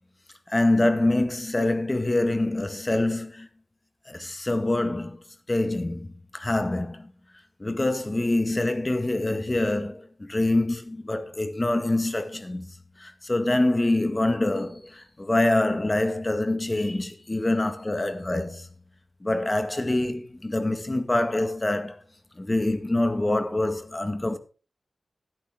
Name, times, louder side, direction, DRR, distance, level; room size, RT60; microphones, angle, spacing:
voice 1, 0.5-3.5 4.1-5.2 5.5-7.1 7.6-18.7 19.2-22.0 22.4-24.4, left 2 dB, 30° left, 1.9 m, -25 dB
11.5 x 11.0 x 3.8 m
cardioid pair, 45°, 0 cm